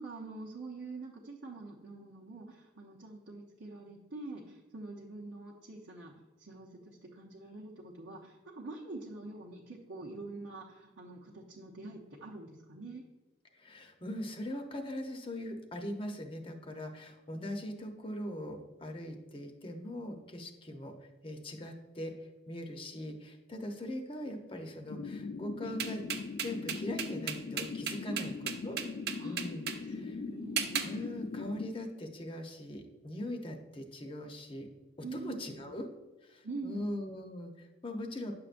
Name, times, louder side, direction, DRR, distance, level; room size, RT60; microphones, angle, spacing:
voice 1, 0.0-13.0 28.1-28.3 28.6-28.7 29.2-29.5 29.9-30.6 35.0-35.7 36.4-36.9, right 3 dB, 90° right, -4 dB, 0.9 m, -45 dB
voice 2, 13.5-20.9 21.2-22.1 22.5-26.1 26.4-28.3 28.6-28.8 29.2-30.2 30.8-34.7 35.1-35.9 36.2-38.3, left 1 dB, 25° left, 4 dB, 0.8 m, -41 dB
sound 1, 24.9-31.7, left 4 dB, 60° left, 0.4 m, -40 dB
sound 2, 25.8-29.8 30.6-30.9, right 8 dB, 55° right, 0.6 m, -35 dB
9.6 x 6.7 x 2.5 m, 1.2 s
head